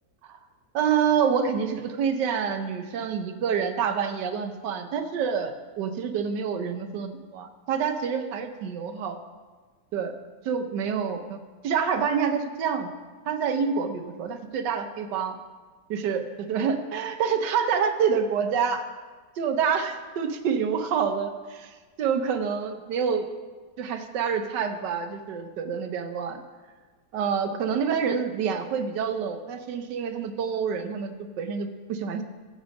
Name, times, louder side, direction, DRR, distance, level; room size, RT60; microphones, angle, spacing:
voice 1, 0.7-9.2 9.9-10.1 10.4-11.4 11.6-12.9 13.3-15.4 15.9-16.2 16.5-18.8 19.4-23.3 23.8-26.4 27.1-32.2, right 6 dB, 80° right, 7 dB, 1.4 m, -27 dB
15.5 x 5.2 x 5.2 m, 1.4 s
omnidirectional pair, 1.9 m